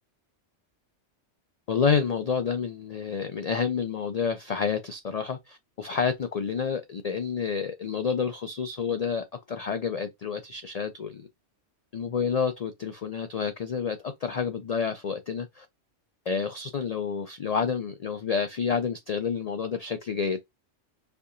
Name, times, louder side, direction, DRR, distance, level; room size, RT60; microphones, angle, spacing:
voice 1, 1.7-11.3 11.9-15.7 16.3-20.4, left 6 dB, 75° left, 0.3 m, -29 dB
4.3 x 2.8 x 2.5 m
omnidirectional pair, 1.2 m